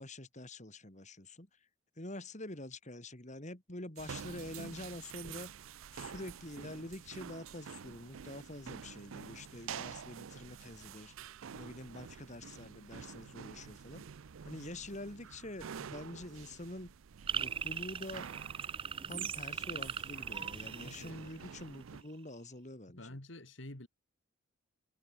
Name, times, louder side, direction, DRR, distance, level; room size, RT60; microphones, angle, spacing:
voice 1, 0.0-1.7 2.0-5.5 5.9-11.1 11.6-14.1 14.5-16.9 17.3-18.3 19.1-23.2, left 1 dB, 35° left, 3.9 m, -46 dB
sound 1, 4.0-22.0, right 7 dB, 80° right, 0.5 m, -49 dB
sound 2, 17.3-21.8, right 7 dB, 25° right, 0.4 m, -39 dB
voice 2, 20.8-21.2 22.9-23.9, left 1 dB, 60° left, 2.9 m, -49 dB
head